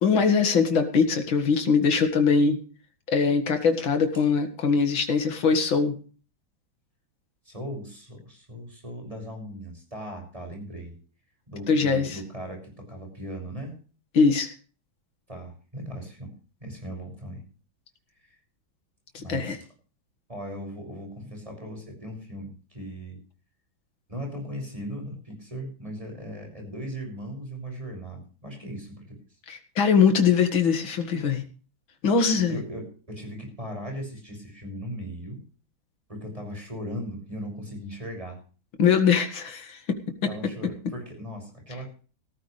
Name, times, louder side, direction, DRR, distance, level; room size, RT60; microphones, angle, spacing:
voice 1, 0.0-2.6 3.1-5.9 11.7-12.2 14.1-14.5 19.1-19.6 29.5-31.4 32.0-32.6 38.8-40.0, left 5 dB, 80° left, 7 dB, 2.7 m, -22 dB
voice 2, 7.4-11.0 11.5-13.7 15.3-16.3 16.6-17.4 18.2-18.4 19.2-19.6 20.3-23.2 24.1-29.2 32.3-35.4 36.1-38.4 40.2-42.0, equal, 15° right, 2 dB, 6.7 m, -38 dB
17.0 x 14.5 x 3.3 m, 0.39 s
omnidirectional pair, 2.1 m